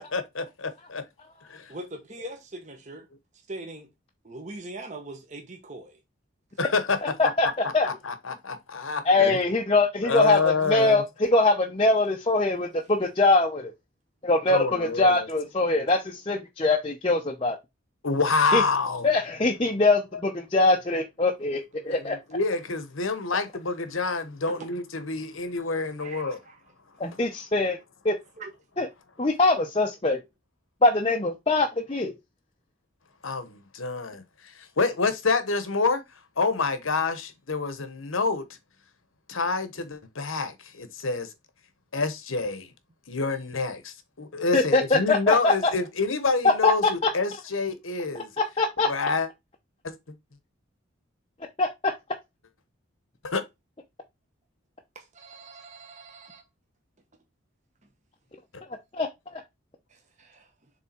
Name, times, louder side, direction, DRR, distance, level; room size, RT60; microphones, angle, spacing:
voice 1, 0.1-1.0 1.5-1.7 6.6-7.0 7.8-9.4 10.0-11.0 14.5-15.3 18.0-19.1 21.9-26.4 33.2-36.0 36.4-38.4 39.3-41.3 41.9-42.7 43.1-48.3 48.8-49.3 49.8-49.9 53.2-53.4, left 4 dB, 75° left, 1.2 m, -27 dB
voice 2, 1.7-3.1 3.5-3.9 4.2-6.0 24.5-24.7 26.0-26.6 28.4-28.5 54.9-56.4 59.9-60.5, right 2 dB, 35° right, 1.3 m, -41 dB
voice 3, 7.0-7.9 9.1-13.7 14.2-17.6 18.5-18.6 19.0-21.6 21.8-22.2 27.0-27.8 28.0-28.2 28.8-28.9 29.2-30.2 30.8-32.1 44.5-45.7 46.6-47.1 48.1-48.9 51.6-51.9 58.9-59.4, left 2 dB, 25° left, 0.7 m, -23 dB
7.1 x 3.6 x 4.4 m
head